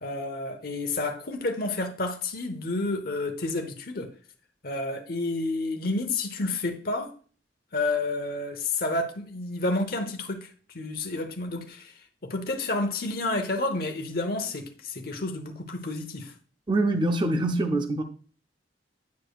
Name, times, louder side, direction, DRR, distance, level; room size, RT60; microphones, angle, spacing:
voice 1, 0.0-4.1 4.6-7.1 7.7-10.5 10.7-11.9 12.2-16.3, left 2 dB, 55° left, 0.9 m, -30 dB
voice 2, 16.7-18.0, right 2 dB, 25° right, 0.6 m, -24 dB
9.3 x 4.9 x 2.4 m
head